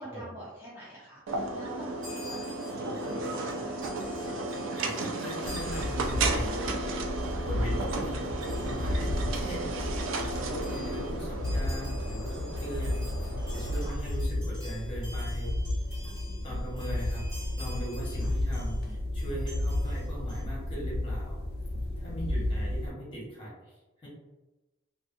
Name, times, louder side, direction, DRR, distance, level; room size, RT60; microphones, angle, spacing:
voice 1, 0.0-3.9 7.5-7.7 13.8-14.0 16.0-16.6 18.1-18.3 22.2-22.6, right 1 dB, 10° right, -8 dB, 0.5 m, -47 dB
sound 1, 1.3-13.9, right 2 dB, 85° right, 0.4 m, -34 dB
Chime, 2.0-7.0 7.3-7.5 8.4-9.0 9.6-9.7 9.8-18.8 19.2-20.4, equal, 40° right, 1.3 m, -49 dB
voice 2, 4.6-6.8 7.4-15.5 16.4-17.2 17.6-21.4 22.0-23.8 24.0-24.1, right 1 dB, 25° left, -6 dB, 1.1 m, -40 dB
sound 2, 5.4-22.9, left 1 dB, 50° left, 0.3 m, -33 dB
2.5 x 2.4 x 2.6 m, 1.1 s
head